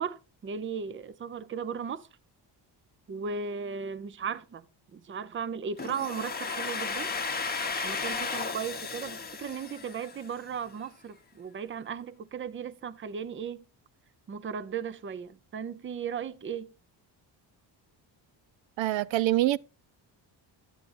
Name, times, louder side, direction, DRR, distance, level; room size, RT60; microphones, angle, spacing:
voice 1, 0.0-2.1 3.1-4.7 4.9-7.1 7.8-13.6 14.3-16.7, right 6 dB, 25° right, 0.6 m, -36 dB
Domestic sounds home sounds, 5.8-10.5, left 4 dB, 20° left, 0.9 m, -34 dB
voice 2, 18.8-19.6, right 15 dB, 75° right, 0.5 m, -25 dB
11.0 x 8.2 x 2.5 m
cardioid pair, 160°, 45 cm